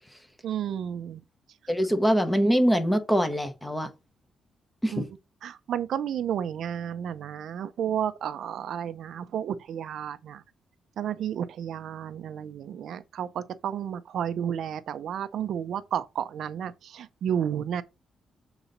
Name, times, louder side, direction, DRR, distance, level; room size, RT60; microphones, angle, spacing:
voice 1, 0.4-1.2 4.9-5.0 5.4-10.4 11.0-17.8, right 9 dB, 70° right, 0.5 m, -32 dB
voice 2, 1.7-3.9 4.8-5.1, equal, 5° left, 1.0 m, -23 dB
7.1 x 3.9 x 4.0 m
cardioid pair, 145°, 0 cm